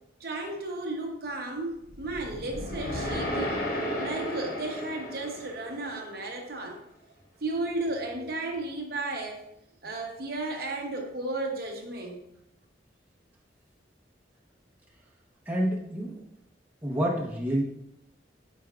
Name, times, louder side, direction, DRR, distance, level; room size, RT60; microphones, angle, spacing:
voice 1, 0.2-3.7 4.0-6.8 7.4-9.4 9.8-12.2, right 2 dB, 55° right, 2 dB, 0.9 m, -34 dB
sound 1, 1.8-6.2, equal, 50° left, 1.3 m, -34 dB
voice 2, 15.5-16.1 16.8-17.6, right 1 dB, 10° right, -4 dB, 1.0 m, -28 dB
8.0 x 5.1 x 2.4 m, 0.79 s
head